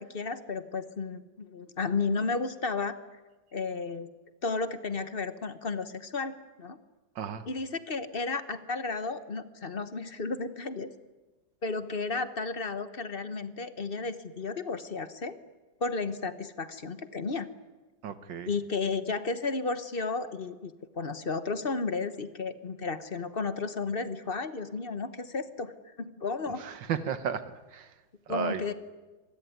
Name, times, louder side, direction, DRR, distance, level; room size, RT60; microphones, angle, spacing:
voice 1, 0.0-3.0 3.5-4.1 4.4-6.8 7.4-10.9 11.6-15.4 15.8-17.5 18.4-25.7 26.0-26.6 28.3-28.7, left 4 dB, 35° left, 12 dB, 1.0 m, -33 dB
voice 2, 18.0-18.5 26.6-27.4 27.7-27.9 28.3-28.6, right 8 dB, 70° right, 12 dB, 1.9 m, -33 dB
26.0 x 20.5 x 9.4 m, 1.2 s
omnidirectional pair, 2.1 m